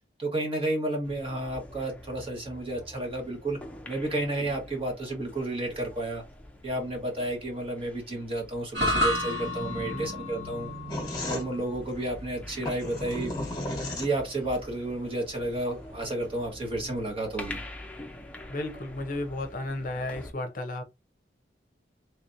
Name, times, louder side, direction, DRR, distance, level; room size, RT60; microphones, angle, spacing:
voice 1, 0.2-3.6 3.9-6.2 6.6-10.7 11.3-13.3 13.9-17.6, right 1 dB, 30° right, 1.2 m, -31 dB
sound 1, 1.0-20.3, left 1 dB, 5° left, 0.5 m, -46 dB
sound 2, 8.7-17.1, equal, 75° right, 1.7 m, -34 dB
sound 3, 10.9-14.6, left 1 dB, 25° left, 1.1 m, -34 dB
voice 2, 18.5-20.8, left 2 dB, 50° left, 0.7 m, -33 dB
3.3 x 2.9 x 2.5 m
head